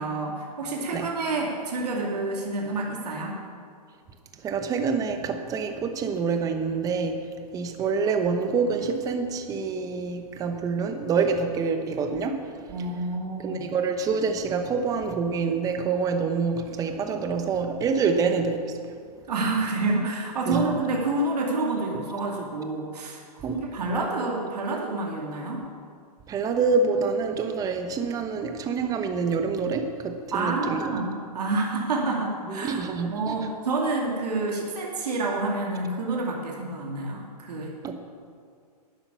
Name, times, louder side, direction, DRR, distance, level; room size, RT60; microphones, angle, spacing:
voice 1, 0.0-3.4 12.7-13.7 19.3-25.7 30.3-37.7, right 2 dB, 75° right, -1 dB, 2.4 m, -28 dB
voice 2, 4.4-12.5 13.4-18.8 20.5-20.8 21.9-22.0 23.4-23.7 26.3-31.0 32.5-33.4 37.8-37.9, right 5 dB, 15° right, 7 dB, 1.0 m, -26 dB
11.0 x 9.8 x 6.9 m, 2.2 s
hypercardioid pair, 145°, 20 cm